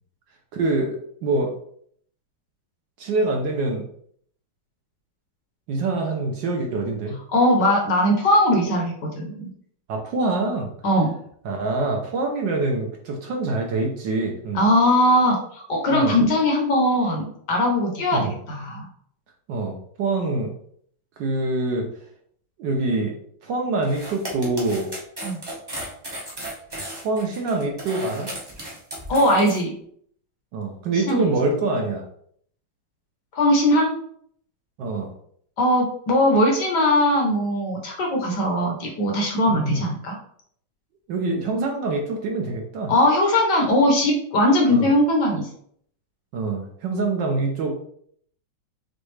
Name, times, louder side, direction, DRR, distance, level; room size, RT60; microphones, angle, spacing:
voice 1, 0.5-1.5 3.0-3.8 5.7-7.2 9.9-10.7 11.4-14.6 15.9-16.1 18.1-18.3 19.5-20.5 21.2-21.9 22.6-23.1 23.4-24.9 27.0-28.3 30.5-32.0 34.8-35.1 39.5-39.8 41.1-42.9 44.7-44.9 46.3-47.9, right 3 dB, 70° right, 2 dB, 1.2 m, -25 dB
voice 2, 7.3-9.5 10.8-11.1 14.5-18.8 25.2-25.4 29.1-29.8 30.9-31.3 33.3-33.9 35.6-40.2 42.9-45.5, left 1 dB, 60° left, 1 dB, 1.3 m, -20 dB
sound 1, 23.8-29.6, right 1 dB, 25° right, 0.5 m, -35 dB
6.2 x 2.4 x 3.2 m, 0.63 s
omnidirectional pair, 2.3 m